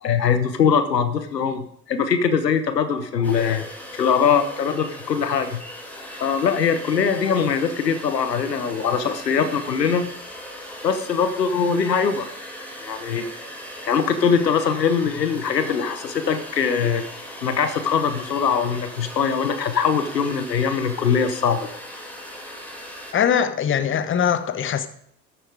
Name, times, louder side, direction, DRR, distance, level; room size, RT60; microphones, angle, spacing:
voice 1, 0.0-3.7 3.9-5.6 6.2-10.1 10.8-12.3 12.8-13.3 13.9-17.0 17.4-21.7, left 6 dB, 85° left, 0.9 m, -22 dB
sound 1, 3.2-23.1, left 1 dB, 5° left, 2.9 m, -38 dB
voice 2, 23.1-24.9, left 8 dB, 25° left, 0.9 m, -21 dB
13.0 x 7.0 x 5.0 m
figure-of-eight pair, 60°, 48 cm